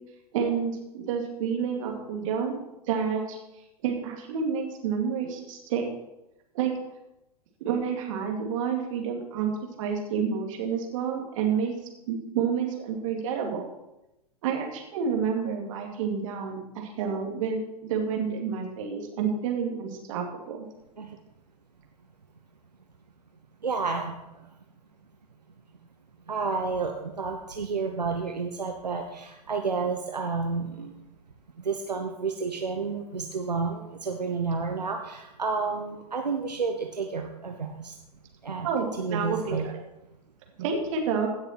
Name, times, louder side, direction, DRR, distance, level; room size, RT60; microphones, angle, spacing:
voice 1, 0.3-3.4 3.8-5.9 6.5-6.7 7.6-9.5 9.8-11.7 12.1-13.7 14.4-20.7 38.6-39.8 40.6-41.3, right 6 dB, 55° right, 1 dB, 2.4 m, -29 dB
voice 2, 23.6-24.2 26.3-30.9 31.6-37.9 38.4-38.7 39.0-39.6, right 4 dB, 85° right, 3 dB, 1.0 m, -30 dB
16.5 x 6.7 x 4.4 m, 0.94 s
figure-of-eight pair, 100°, 21 cm